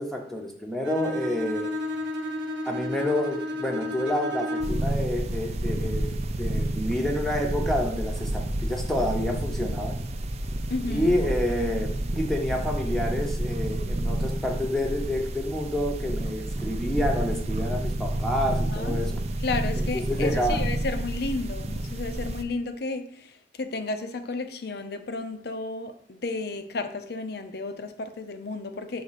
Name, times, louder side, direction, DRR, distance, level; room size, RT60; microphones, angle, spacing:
voice 1, 0.0-1.7 2.6-10.0 10.9-19.2 19.8-20.6, left 1 dB, ahead, 0.8 m, -29 dB
Bowed string instrument, 0.8-4.9, left 1 dB, 85° right, 0.9 m, -32 dB
sound 1, 4.6-22.4, right 1 dB, 40° right, 0.5 m, -29 dB
voice 2, 10.7-11.1 18.5-19.0 19.4-29.0, left 3 dB, 60° left, 0.7 m, -33 dB
6.5 x 3.5 x 5.8 m
head